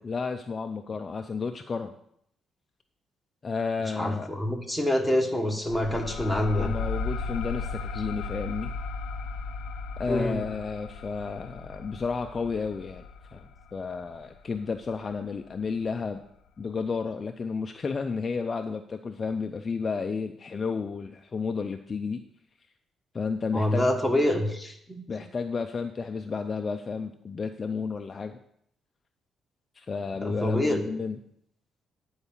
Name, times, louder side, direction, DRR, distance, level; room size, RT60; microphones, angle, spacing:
voice 1, 0.0-1.9 3.4-4.3 6.6-8.7 10.0-13.0 13.3-16.2 16.6-22.2 23.1-23.8 25.1-28.4 29.8-31.2, left 5 dB, 25° left, 6 dB, 0.4 m, -32 dB
voice 2, 4.0-6.7 10.1-10.4 23.5-25.0 30.2-30.8, left 1 dB, 5° right, 3 dB, 1.4 m, -26 dB
sound 1, 5.7-14.9, left 4 dB, 75° left, 0.5 m, -36 dB
9.8 x 4.7 x 7.1 m, 0.72 s
cardioid pair, 160°, 0 cm